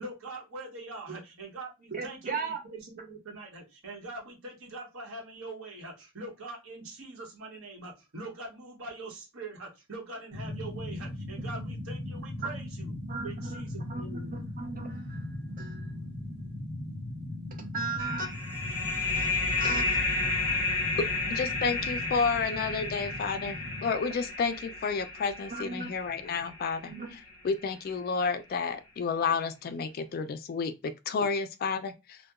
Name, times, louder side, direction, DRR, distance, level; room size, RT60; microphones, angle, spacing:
voice 1, 0.0-12.9 13.2-14.5, right 2 dB, 80° right, 1.0 m, -43 dB
voice 2, 1.9-2.6 12.4-12.5 13.1-13.6 13.9-16.0 17.5-20.7 25.5-25.9 26.9-27.2 29.3-29.4, right 3 dB, 40° right, 0.6 m, -38 dB
sound 1, 10.3-23.9, left 1 dB, 65° right, 1.4 m, -39 dB
sound 2, 18.0-27.3, left 3 dB, 10° right, 1.4 m, -32 dB
voice 3, 21.3-26.9 27.4-32.2, left 5 dB, 45° left, 0.3 m, -31 dB
2.7 x 2.1 x 2.3 m
head